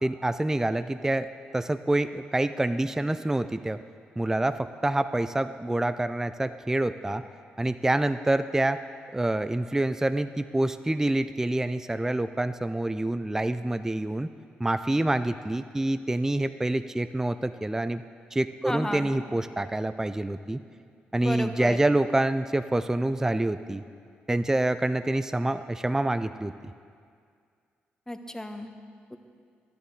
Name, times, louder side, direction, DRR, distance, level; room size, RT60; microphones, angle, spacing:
voice 1, 0.0-3.8 4.2-7.2 7.6-8.8 9.1-14.3 14.6-18.0 18.3-20.6 21.1-23.8 24.3-26.7, right 1 dB, 10° right, 12 dB, 0.3 m, -27 dB
voice 2, 18.6-19.1 21.2-21.8 28.1-28.7 29.1-29.2, left 1 dB, 10° left, 7 dB, 0.9 m, -33 dB
11.5 x 10.0 x 3.8 m, 2.2 s
hypercardioid pair, 45°, 5 cm